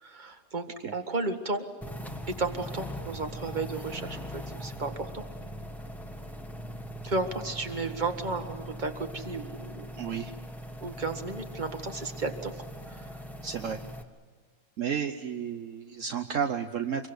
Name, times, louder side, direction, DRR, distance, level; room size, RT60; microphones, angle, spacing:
voice 1, 0.0-0.7 0.9-1.6 2.4-4.2 4.6-5.2 7.1-9.9 10.8-12.5 12.9-13.1, right 3 dB, 30° right, 6 dB, 1.9 m, -33 dB
sound 1, 1.8-14.0, equal, ahead, 1.4 m, -41 dB
voice 2, 9.9-10.3 13.4-13.8 14.8-17.1, right 7 dB, 65° right, 7 dB, 1.3 m, -32 dB
26.0 x 23.0 x 8.1 m, 1.5 s
omnidirectional pair, 1.5 m